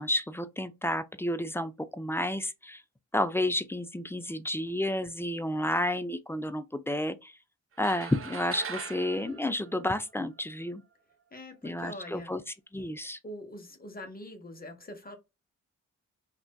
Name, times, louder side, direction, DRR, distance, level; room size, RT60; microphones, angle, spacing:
voice 1, 0.0-2.8 3.1-7.3 7.8-10.8 11.6-12.4 12.7-13.2, left 1 dB, 10° left, 0.3 m, -31 dB
sound 1, 7.8-10.4, right 6 dB, 40° right, 0.5 m, -41 dB
voice 2, 11.3-12.3 13.2-15.2, left 1 dB, 25° left, 0.9 m, -43 dB
2.5 x 2.2 x 2.2 m
supercardioid pair, 50°, 34 cm